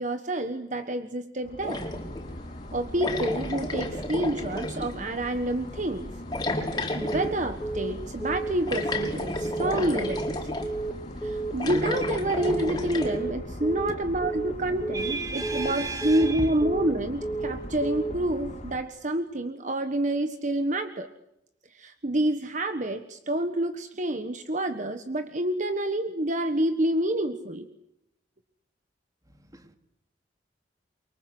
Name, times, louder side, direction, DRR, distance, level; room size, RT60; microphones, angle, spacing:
voice 1, 0.0-1.8 2.7-6.1 6.6-10.5 11.2-21.1 21.7-27.7, right 1 dB, 45° right, 8 dB, 1.4 m, -28 dB
sound 1, 1.4-18.8, left 1 dB, 40° left, 4.0 m, -40 dB
sound 2, 1.6-2.3 3.0-4.9 6.3-7.3 8.7-10.7 11.5-13.2, left 2 dB, 25° left, 5.0 m, -31 dB
Telephone, 7.0-7.3 7.6-7.9 8.2-8.5 8.8-9.1 9.4-9.7 10.0-10.3 10.6-10.9 11.2-11.5 11.8-12.1 12.4-12.7 13.0-13.3 13.6-13.9 14.2-14.5 14.8-15.1 15.4-15.7 16.0-16.3 16.6-16.9 17.2-17.5 17.8-18.1, right 3 dB, 5° left, 1.7 m, -31 dB
voice 2, 14.9-16.5 29.5-29.8, right 3 dB, 20° right, 7 dB, 2.9 m, -34 dB
29.0 x 24.0 x 8.0 m, 0.81 s
head